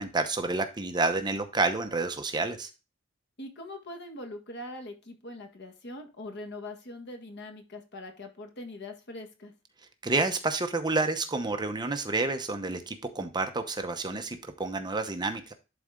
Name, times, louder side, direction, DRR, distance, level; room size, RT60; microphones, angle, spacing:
voice 1, 0.0-2.7 10.0-15.5, right 3 dB, 20° right, 6 dB, 0.8 m, -29 dB
voice 2, 3.4-9.5, left 1 dB, 55° left, 5 dB, 1.7 m, -42 dB
11.0 x 4.2 x 3.7 m, 0.30 s
head